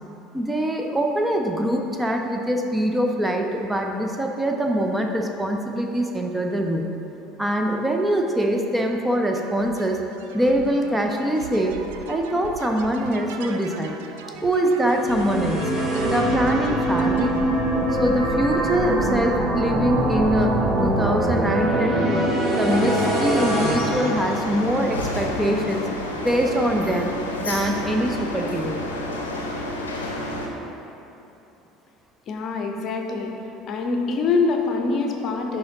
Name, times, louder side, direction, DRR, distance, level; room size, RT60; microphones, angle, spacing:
voice 1, 0.3-6.9 7.4-10.0 10.3-11.8 12.1-14.0 14.4-15.8 16.1-17.4 17.9-22.0 22.6-25.8 26.2-27.1 27.4-28.8, right 1 dB, 10° right, 2 dB, 0.5 m, -23 dB
sound 1, 9.3-17.5, right 6 dB, 65° right, 0.4 m, -39 dB
sound 2, 14.8-25.0, right 1 dB, 40° right, 1.0 m, -23 dB
sound 3, 22.7-30.5, left 1 dB, 80° left, 0.6 m, -30 dB
voice 2, 32.3-33.3 33.7-35.6, left 4 dB, 45° left, 3 dB, 0.6 m, -24 dB
10.5 x 3.8 x 2.8 m, 2.9 s
figure-of-eight pair, 65°, 0 cm